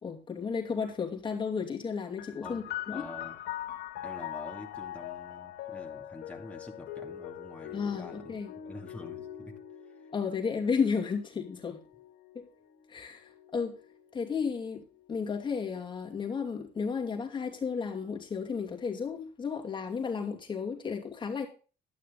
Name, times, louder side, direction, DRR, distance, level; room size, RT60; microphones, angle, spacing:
voice 1, 0.0-3.0 7.7-8.5 10.1-11.8 12.3-12.5 12.9-13.8 14.1-14.8 15.1-21.5, left 5 dB, 30° left, 2.5 m, -33 dB
sound 1, 2.2-15.4 16.3-17.1, left 11 dB, 75° left, 2.1 m, -43 dB
voice 2, 2.4-3.4 4.0-8.4 8.6-9.5 9.8-10.1, left 2 dB, 5° left, 2.6 m, -46 dB
12.0 x 9.5 x 3.9 m
cardioid pair, 110°, 17 cm